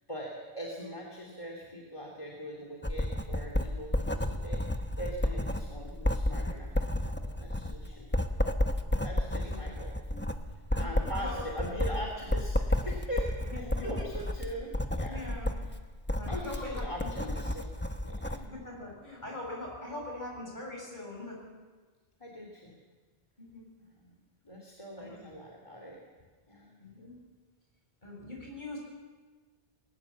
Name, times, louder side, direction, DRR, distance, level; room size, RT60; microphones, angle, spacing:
voice 1, 0.1-8.4 9.0-9.9 10.4-15.3 15.6-15.7 16.3-18.5 22.2-22.7 24.0-24.2 24.4-26.0 26.5-26.8, equal, 30° left, -1 dB, 2.7 m, -42 dB
Writing, 2.8-18.5, left 1 dB, 10° left, 1.0 m, -32 dB
voice 2, 9.2-9.6 10.7-12.0 13.5-14.3 15.1-15.5 16.1-17.1 18.4-21.4 23.4-23.7 25.0-25.3 26.8-27.1 28.0-28.8, left 2 dB, 45° left, -1 dB, 6.9 m, -42 dB
21.0 x 20.0 x 7.2 m, 1.4 s
omnidirectional pair, 1.1 m